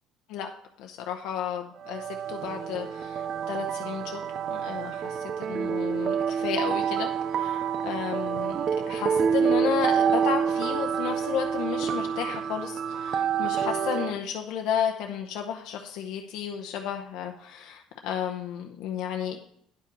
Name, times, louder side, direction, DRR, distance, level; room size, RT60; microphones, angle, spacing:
voice 1, 0.8-4.2 4.5-8.6 8.9-19.4, left 9 dB, 65° left, 2 dB, 0.8 m, -33 dB
sound 1, 1.8-14.2, right 7 dB, 40° right, 0.4 m, -28 dB
10.5 x 5.6 x 5.3 m, 0.68 s
cardioid pair, 165°, 0 cm